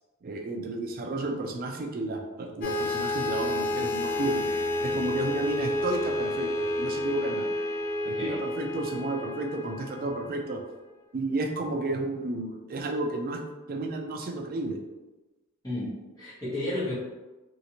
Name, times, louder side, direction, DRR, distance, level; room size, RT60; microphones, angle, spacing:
voice 1, 0.2-4.5 4.8-7.5 8.0-10.6 11.1-13.4 13.7-14.8, right 2 dB, 40° right, 3 dB, 0.4 m, -32 dB
sound 1, 2.6-10.4, left 1 dB, 40° left, 0.5 m, -30 dB
voice 2, 15.6-16.9, left 1 dB, 15° left, -9 dB, 1.3 m, -32 dB
3.2 x 2.7 x 2.9 m, 1.1 s
head